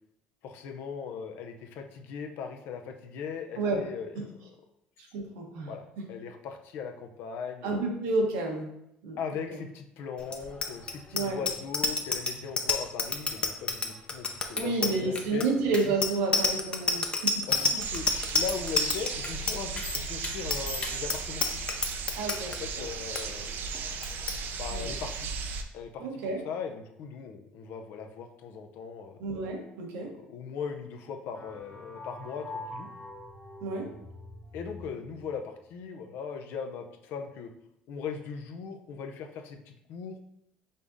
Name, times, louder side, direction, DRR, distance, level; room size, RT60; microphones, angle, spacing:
voice 1, 0.4-4.5 5.6-5.8 6.1-7.7 9.2-15.5 17.5-18.0 18.3-21.4 22.6-23.5 24.6-25.3 25.7-29.2 30.0-32.4 32.7-32.9 34.5-37.5 37.9-40.2, left 6 dB, 70° left, 5 dB, 0.6 m, -39 dB
voice 2, 5.1-5.7 7.6-8.7 9.0-9.6 11.1-11.4 14.5-17.8 22.2-22.8 24.7-24.9 26.0-26.4 29.2-30.1 33.6-33.9, right 3 dB, 85° right, 1 dB, 1.1 m, -30 dB
Bicycle bell, 10.3-22.6 22.9-23.2 23.5-23.8 24.0-24.4, left 3 dB, 25° left, 0.6 m, -29 dB
sound 1, 17.8-25.6, right 5 dB, 60° right, 0.5 m, -36 dB
sound 2, 31.3-35.3, left 2 dB, 45° left, 1.2 m, -44 dB
5.4 x 3.5 x 2.6 m, 0.78 s
supercardioid pair, 85°, 4 cm